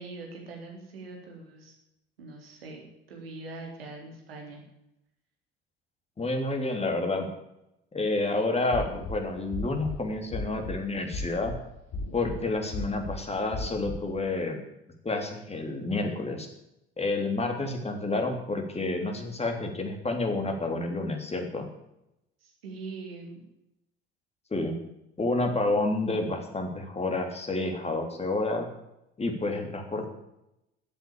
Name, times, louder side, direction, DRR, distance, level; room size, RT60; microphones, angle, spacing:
voice 1, 0.0-1.8 2.2-4.6 22.4-23.4, right 3 dB, 80° right, 1 dB, 3.7 m, -42 dB
voice 2, 6.2-7.3 7.9-11.6 12.1-14.6 15.0-16.5 17.0-21.7 24.5-24.8 25.2-28.7 29.2-30.1, left 2 dB, 20° left, 4 dB, 3.5 m, -29 dB
sound 1, 8.7-9.1 9.5-9.9 10.3-10.7 11.1-11.5 11.9-12.3 12.7-13.1 13.5-13.9, left 2 dB, 50° left, 4.7 m, -35 dB
13.5 x 8.3 x 8.8 m, 0.85 s
figure-of-eight pair, 65°, 29 cm